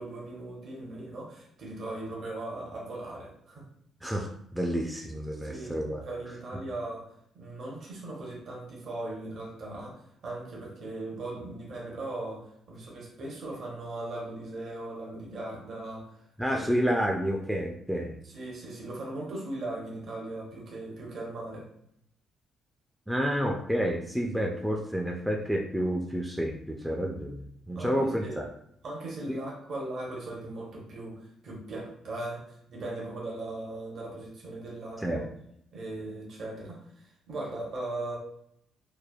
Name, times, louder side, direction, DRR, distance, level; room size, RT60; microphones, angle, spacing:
voice 1, 0.0-3.7 5.4-7.1 7.3-16.1 16.5-16.9 18.2-21.7 27.7-28.4 28.8-32.4 32.7-35.2 35.7-38.2, right 2 dB, 60° right, -3 dB, 0.9 m, -38 dB
voice 2, 4.5-6.0 16.4-18.2 23.1-27.4 27.7-28.3 29.3-29.4 35.0-35.2, equal, 5° right, 0 dB, 0.3 m, -29 dB
3.1 x 2.0 x 2.3 m, 0.72 s
cardioid pair, 90°, 0 cm